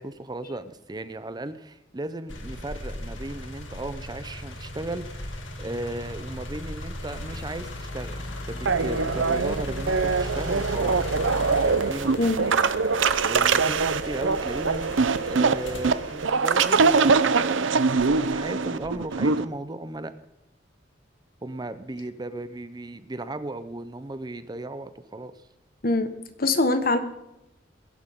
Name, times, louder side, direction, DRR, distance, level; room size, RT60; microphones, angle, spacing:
voice 1, 0.0-11.1 11.6-12.2 13.2-15.0 15.2-20.1 21.4-25.3, right 2 dB, 20° right, 12 dB, 0.7 m, -36 dB
sound 1, 2.3-17.3 17.9-19.1, left 1 dB, 85° left, 2.5 m, -37 dB
sound 2, 8.7-19.4, right 4 dB, 80° right, 0.7 m, -23 dB
voice 2, 12.2-12.5 25.8-26.1 26.4-27.0, left 2 dB, 50° left, 9 dB, 1.5 m, -23 dB
22.0 x 11.0 x 3.7 m, 0.92 s
head